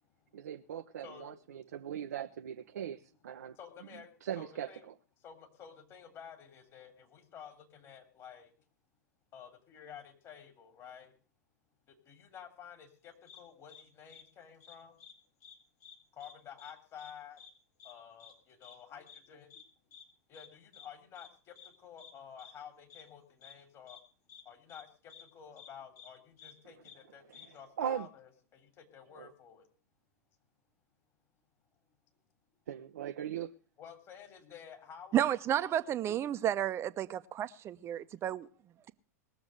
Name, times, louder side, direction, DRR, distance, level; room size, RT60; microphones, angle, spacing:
voice 1, 0.3-3.6 4.2-4.9 27.3-28.1 29.2-29.3 32.7-33.5, right 10 dB, 65° right, 0.6 m, -40 dB
voice 2, 1.0-1.3 3.5-4.9 5.2-8.5 9.3-11.1 11.9-15.0 16.1-17.4 17.8-19.5 20.3-24.0 24.4-29.7 33.8-35.3, left 8 dB, 35° left, 3.2 m, -51 dB
sound 1, 13.3-13.4 13.7-13.8 14.1-14.2 14.6-15.1 15.4-15.5 15.8-16.3 16.6-16.7 17.0-17.1 17.4-17.5 17.8-17.9 18.2-18.3 18.6-18.7 19.1-19.2 19.5-19.6 19.9-20.0 20.3-20.5 20.7-20.9 21.1-21.3 21.5-21.7 22.0-22.1 22.4-22.5 22.9-23.0 23.4-23.5 23.9-24.0 24.3-24.4 24.7-24.8 25.1-25.2 25.6-25.7 26.0-26.1 26.4-26.5 26.8-27.0 27.3-27.4, left 7 dB, 65° left, 3.8 m, -53 dB
voice 3, 35.1-38.5, right 11 dB, 30° right, 0.8 m, -32 dB
20.0 x 7.1 x 6.5 m
figure-of-eight pair, 95°, 9 cm